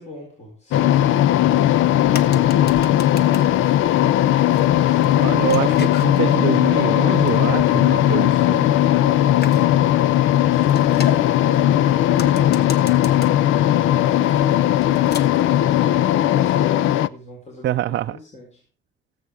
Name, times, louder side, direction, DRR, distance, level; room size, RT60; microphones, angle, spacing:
voice 1, 0.0-4.3 4.5-5.0 13.3-18.6, left 2 dB, 35° left, -1 dB, 4.4 m, -40 dB
sound 1, 0.7-17.1, left 12 dB, 85° left, 0.5 m, -17 dB
sound 2, 1.7-15.6, left 6 dB, 55° left, 1.3 m, -39 dB
voice 2, 5.2-8.7 17.6-18.2, right 13 dB, 60° right, 9 dB, 0.5 m, -25 dB
18.0 x 8.0 x 3.5 m, 0.37 s
cardioid pair, 90°, 20 cm